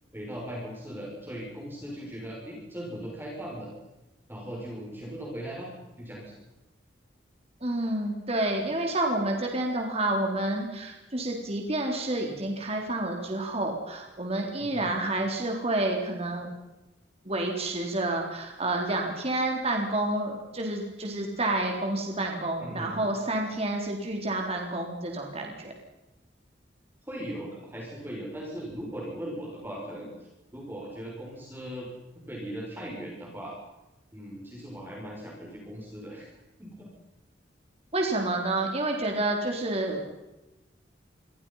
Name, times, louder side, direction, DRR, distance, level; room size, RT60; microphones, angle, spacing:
voice 1, 0.1-3.7 4.3-5.7 6.0-6.4 14.6-14.9 22.6-23.0 27.1-30.1 30.5-31.9 32.3-33.5 34.1-36.3 36.6-36.9, equal, 10° right, -3 dB, 6.5 m, -38 dB
voice 2, 7.6-16.5 17.3-25.7 37.9-40.0, right 2 dB, 35° right, 1 dB, 4.0 m, -29 dB
29.5 x 25.0 x 5.8 m, 1.0 s
head